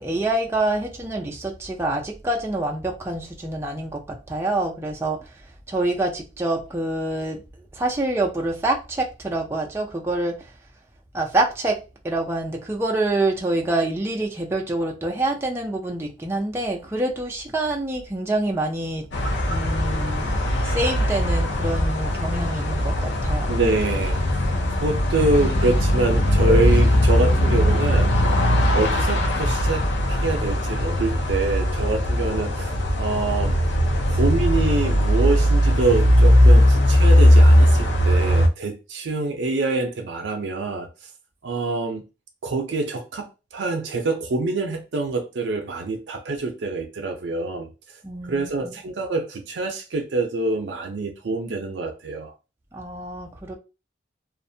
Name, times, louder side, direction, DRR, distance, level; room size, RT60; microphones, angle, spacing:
voice 1, 0.0-5.3 5.7-7.4 7.7-10.5 11.1-11.8 12.0-19.1 19.5-20.4 20.6-23.6 48.0-48.7 52.7-53.5, right 2 dB, 15° right, 0.4 m, -26 dB
sound 1, 19.1-38.5, equal, 80° left, 0.5 m, -19 dB
voice 2, 23.5-24.2 24.7-28.4 28.7-33.6 34.1-40.9 41.4-42.0 42.4-47.7 48.3-52.3, right 3 dB, 80° right, 0.5 m, -25 dB
2.5 x 2.1 x 2.6 m
head